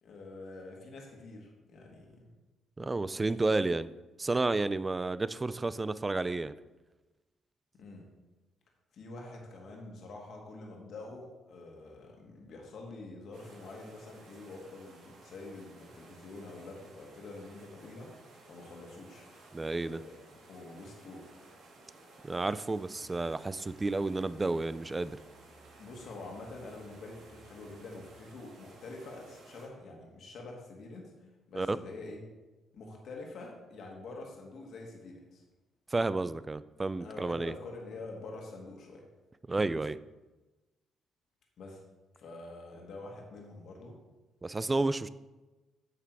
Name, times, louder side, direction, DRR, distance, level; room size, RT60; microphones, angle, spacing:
voice 1, 0.0-2.3 7.8-8.1 8.9-18.1 18.5-19.3 19.9-20.1 20.5-21.2 25.8-31.1 31.5-32.2 32.7-35.4 37.0-39.0 41.6-41.8 42.2-44.0, left 2 dB, 65° left, 0 dB, 1.7 m, -46 dB
voice 2, 2.8-3.9 4.2-6.5 19.5-20.0 22.2-25.2 31.5-31.8 35.9-37.5 39.5-40.0 44.4-45.1, right 2 dB, 20° right, 15 dB, 0.4 m, -31 dB
sound 1, 13.3-29.7, right 2 dB, 80° right, 2.1 m, -56 dB
Musical instrument, 22.9-28.4, right 2 dB, 40° right, 1.4 m, -63 dB
8.0 x 5.9 x 4.7 m, 1.1 s
cardioid pair, 90°, 0 cm